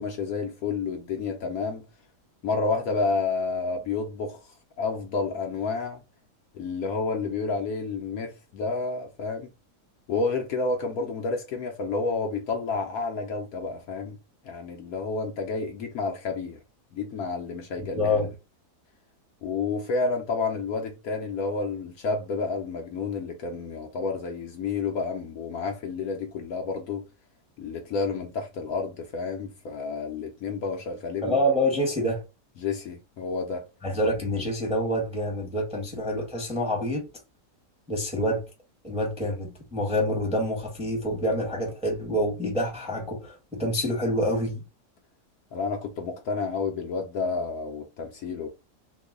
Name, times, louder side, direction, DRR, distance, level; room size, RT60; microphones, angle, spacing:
voice 1, 0.0-1.8 2.4-6.0 6.5-9.5 10.1-14.2 14.4-16.6 16.9-18.1 19.4-27.0 27.6-31.4 32.6-33.7 45.5-48.5, left 4 dB, 70° left, 1.0 m, -30 dB
voice 2, 17.8-18.3 31.2-32.2 33.8-37.1 37.9-38.4 38.8-44.6, equal, 5° right, 0.8 m, -27 dB
3.0 x 2.1 x 3.6 m
omnidirectional pair, 1.8 m